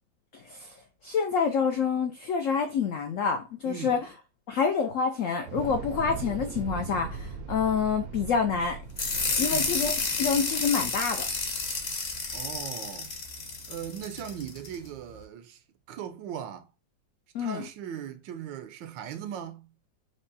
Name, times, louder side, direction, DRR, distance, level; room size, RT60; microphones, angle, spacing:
voice 1, 0.3-0.7 1.0-4.1 4.5-8.8 9.4-9.9 10.2-11.2 17.3-17.7, left 6 dB, 85° left, 0.7 m, -27 dB
voice 2, 3.6-4.0 9.3-9.8 12.3-13.2 13.7-15.6 15.9-16.7 17.4-19.7, right 9 dB, 90° right, 1.3 m, -39 dB
Thunder / Explosion, 5.4-13.6, right 6 dB, 70° right, 0.9 m, -40 dB
sound 1, 9.0-14.7, left 4 dB, 45° left, 1.0 m, -31 dB
5.0 x 2.2 x 3.9 m
omnidirectional pair, 2.0 m